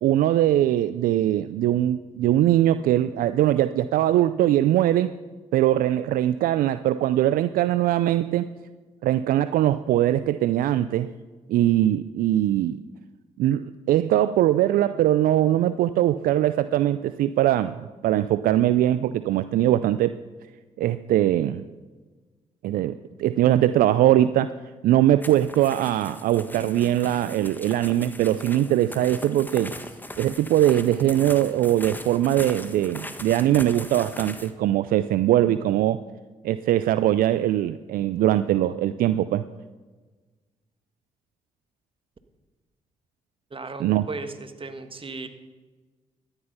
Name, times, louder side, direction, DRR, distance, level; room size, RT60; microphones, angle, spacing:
voice 1, 0.0-5.1 5.5-8.5 9.0-11.1 11.5-12.8 13.4-20.2 20.8-21.6 22.6-24.5 24.8-29.7 30.2-36.0 36.4-39.5 43.8-44.0, right 13 dB, 75° right, 14 dB, 0.4 m, -21 dB
sound 1, 25.2-34.5, left 1 dB, 10° left, 1.3 m, -39 dB
voice 2, 43.5-45.3, right 3 dB, 35° right, 8 dB, 1.5 m, -36 dB
13.0 x 9.9 x 5.5 m, 1.3 s
hypercardioid pair, 45°, 15 cm